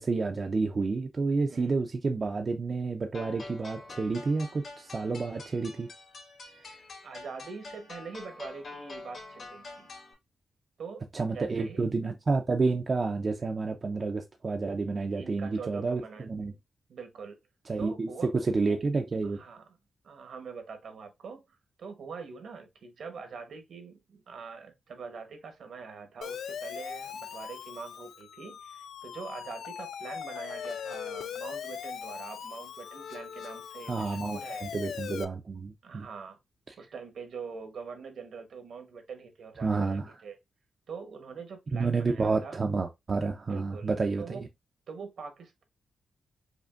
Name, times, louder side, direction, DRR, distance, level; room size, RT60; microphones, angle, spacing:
voice 1, 0.0-5.9 11.1-16.5 17.7-19.4 33.9-36.1 39.6-40.1 41.7-44.4, right 4 dB, 40° right, 0.5 m, -30 dB
sound 1, 3.1-10.1, left 3 dB, 60° left, 1.7 m, -46 dB
voice 2, 7.0-9.9 10.8-11.0 11.3-11.9 15.1-16.3 16.9-17.4 17.8-18.8 19.2-19.6 20.0-34.7 35.8-36.4 36.8-40.4 40.9-42.6 43.5-44.4 44.9-45.6, right 5 dB, 70° right, 1.0 m, -44 dB
Siren, 26.2-35.2, left 8 dB, 85° left, 0.3 m, -40 dB
5.0 x 2.6 x 2.5 m
wide cardioid pair, 115°, 0 cm